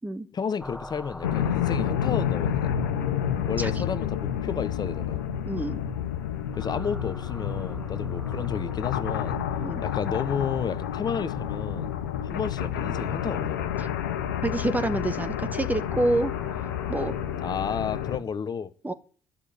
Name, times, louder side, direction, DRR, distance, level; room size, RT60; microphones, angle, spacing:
voice 1, 0.3-2.8 3.5-5.3 6.6-9.4 9.8-11.9 12.2-13.8 17.4-18.7, left 6 dB, 45° left, 0.9 m, -32 dB
sound 1, 0.6-18.2, equal, 5° left, 1.6 m, -43 dB
sound 2, 1.2-18.2, left 9 dB, 90° left, 0.8 m, -29 dB
voice 2, 5.5-5.8 9.6-9.8 14.4-16.3 16.9-17.1 18.8-18.9, right 2 dB, 15° right, 1.3 m, -27 dB
11.5 x 6.7 x 8.8 m
hypercardioid pair, 50°, 10 cm